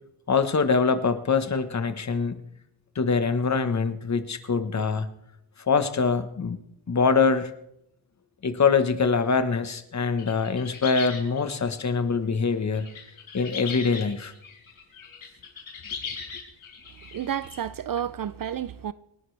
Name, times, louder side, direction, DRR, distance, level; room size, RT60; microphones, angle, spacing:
voice 1, 0.3-2.4 2.9-5.1 5.7-6.6 6.9-7.5 8.4-12.9 13.3-14.3, left 5 dB, 35° left, 1.2 m, -24 dB
sound 1, 10.2-11.8 12.7-17.6, left 6 dB, 80° left, 4.7 m, -39 dB
voice 2, 17.1-18.9, right 9 dB, 45° right, 0.4 m, -31 dB
28.0 x 11.0 x 3.3 m
wide cardioid pair, 130°, 48 cm